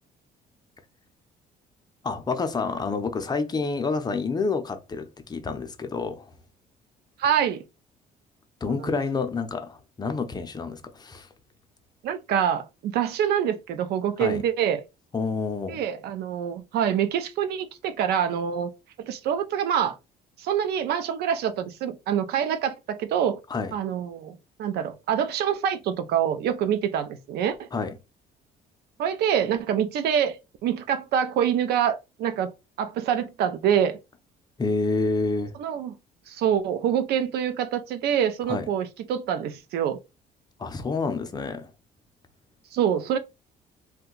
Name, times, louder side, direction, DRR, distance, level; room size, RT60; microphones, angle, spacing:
voice 1, 2.0-6.3 8.6-11.3 14.2-14.4 15.1-15.8 23.5-23.7 27.7-27.9 34.6-35.5 38.5-38.7 40.6-41.7, left 4 dB, 25° left, 0.5 m, -28 dB
voice 2, 7.2-7.6 8.6-8.9 12.0-14.8 15.7-18.7 19.0-20.0 20.4-23.4 23.7-27.7 29.0-32.5 32.8-34.0 35.6-36.0 36.3-40.0 42.7-43.2, right 9 dB, 75° right, 0.5 m, -26 dB
2.7 x 2.2 x 3.8 m
cardioid pair, 110°, 17 cm